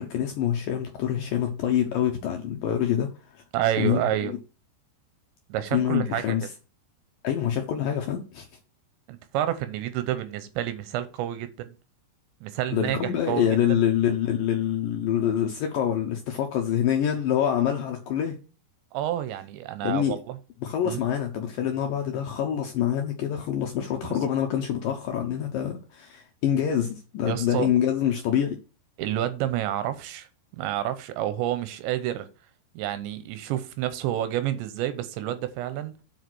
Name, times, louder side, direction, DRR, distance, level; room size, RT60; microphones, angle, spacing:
voice 1, 0.0-3.1 3.8-4.4 5.7-6.5 7.2-8.5 12.7-18.4 19.8-20.2 20.6-28.6, left 9 dB, 75° left, 2.0 m, -26 dB
voice 2, 3.5-4.3 5.5-6.4 9.1-11.7 12.4-13.5 18.9-20.4 20.8-21.0 27.2-27.7 29.0-30.3 30.5-32.3 32.8-35.9, right 12 dB, 85° right, 3.2 m, -29 dB
7.9 x 5.0 x 6.1 m
omnidirectional pair, 5.1 m